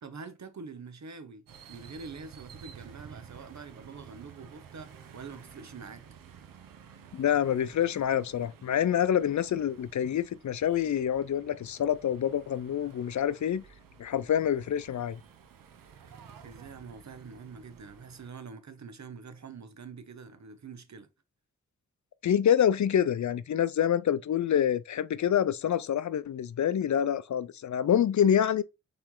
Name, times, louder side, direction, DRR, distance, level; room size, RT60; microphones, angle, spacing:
voice 1, 0.0-6.0 16.4-21.1, right 5 dB, 60° right, 1.0 m, -45 dB
sound 1, 1.5-18.3, right 7 dB, 90° right, 0.8 m, -52 dB
voice 2, 7.1-13.6 14.0-15.2 22.2-28.6, left 9 dB, 60° left, 0.5 m, -26 dB
4.3 x 3.3 x 3.8 m
cardioid pair, 45°, 32 cm